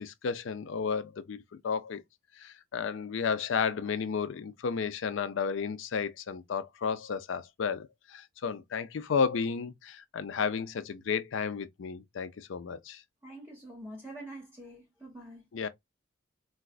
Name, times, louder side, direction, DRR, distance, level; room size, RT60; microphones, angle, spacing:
voice 1, 0.0-2.0 2.4-13.0 15.5-15.7, left 6 dB, 65° left, 0.4 m, -32 dB
voice 2, 13.2-15.4, right 1 dB, 10° right, 1.1 m, -45 dB
4.0 x 2.4 x 2.3 m
head